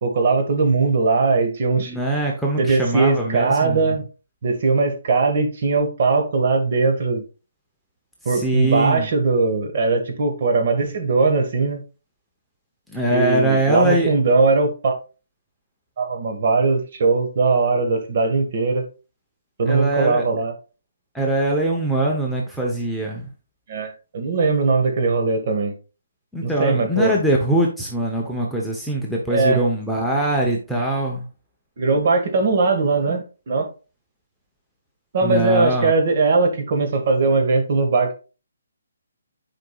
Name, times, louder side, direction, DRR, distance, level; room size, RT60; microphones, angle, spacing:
voice 1, 0.0-2.0 2.6-4.0 4.4-7.2 8.2-11.8 13.1-14.9 16.0-18.8 19.6-20.5 23.7-25.7 26.4-27.1 29.3-29.6 31.8-33.7 35.1-38.1, right 3 dB, 45° right, 4 dB, 1.7 m, -20 dB
voice 2, 1.9-4.0 8.2-9.1 12.9-14.1 19.7-20.2 21.1-23.3 26.3-31.3 35.2-35.9, right 1 dB, ahead, -3 dB, 0.8 m, -22 dB
9.7 x 5.1 x 2.4 m, 0.33 s
hypercardioid pair, 165°, 0 cm